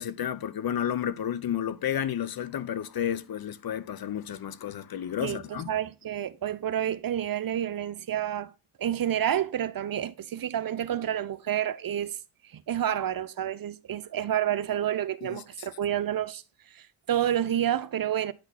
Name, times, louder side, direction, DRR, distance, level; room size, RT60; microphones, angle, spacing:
voice 1, 0.0-5.7 15.2-15.4, left 9 dB, 45° left, 0.8 m, -31 dB
voice 2, 5.2-8.5 8.8-12.2 12.5-16.4 16.7-18.3, right 10 dB, 45° right, 0.8 m, -29 dB
9.7 x 5.9 x 4.2 m
hypercardioid pair, 50°, 50 cm